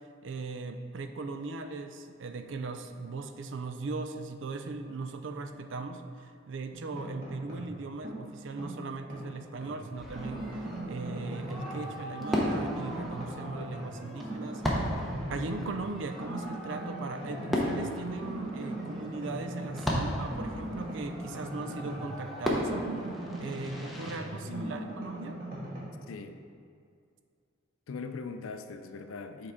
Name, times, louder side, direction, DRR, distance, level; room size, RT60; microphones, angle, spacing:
voice 1, 0.2-23.1 23.4-25.4, right 3 dB, 65° right, 7 dB, 0.4 m, -39 dB
sound 1, 6.7-7.7 8.0-9.8 10.1-11.9 12.2-13.9 14.2-15.8 16.2-17.8 18.2-22.2 22.5-25.8, right 1 dB, 45° right, 1.6 m, -39 dB
Fireworks, 9.9-24.2, equal, ahead, 0.7 m, -36 dB
voice 2, 24.5-25.0 26.1-26.4 27.9-29.5, left 4 dB, 85° left, 8 dB, 0.5 m, -41 dB
7.2 x 4.7 x 3.6 m, 2.3 s
head